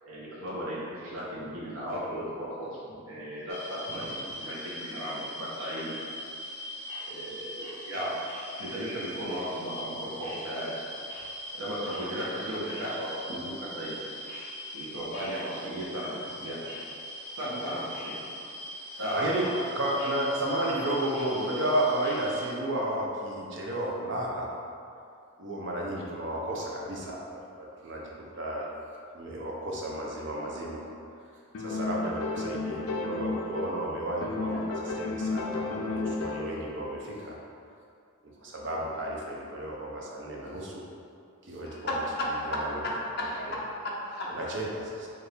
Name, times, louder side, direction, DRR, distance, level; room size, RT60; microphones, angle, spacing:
voice 1, 0.0-2.8 3.0-5.9 7.1-8.1 8.6-10.7 11.5-13.9 14.7-16.6 17.4-18.1 19.0-19.5, equal, 80° right, -8 dB, 1.1 m, -35 dB
sound 1, 3.5-22.5, equal, 10° left, 1.1 m, -41 dB
voice 2, 19.1-24.5 25.4-28.7 29.1-30.8 31.6-37.3 38.4-40.8 41.5-42.8 43.4-43.6 44.3-45.1, right 1 dB, 55° right, -3 dB, 0.6 m, -32 dB
sound 2, 31.5-33.9 34.2-36.6, left 3 dB, 90° left, 0.4 m, -32 dB
voice 3, 41.6-44.3, left 1 dB, 50° left, -3 dB, 0.6 m, -33 dB
4.4 x 2.6 x 3.4 m, 2.4 s
head